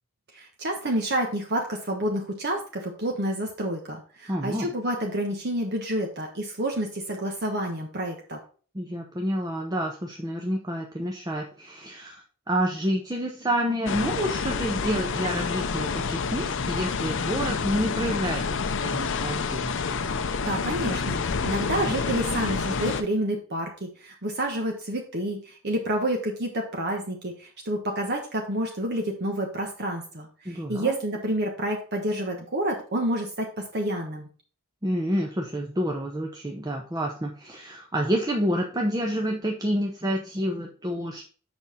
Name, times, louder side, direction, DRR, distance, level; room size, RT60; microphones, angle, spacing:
voice 1, 0.3-8.4 20.4-34.3, right 1 dB, 50° right, 1 dB, 1.2 m, -29 dB
voice 2, 4.3-4.7 8.7-19.7 30.4-31.0 34.8-41.3, equal, 20° right, 1 dB, 0.8 m, -29 dB
sound 1, 13.9-23.0, left 5 dB, 60° left, 0.6 m, -28 dB
7.2 x 5.4 x 4.2 m, 0.40 s
head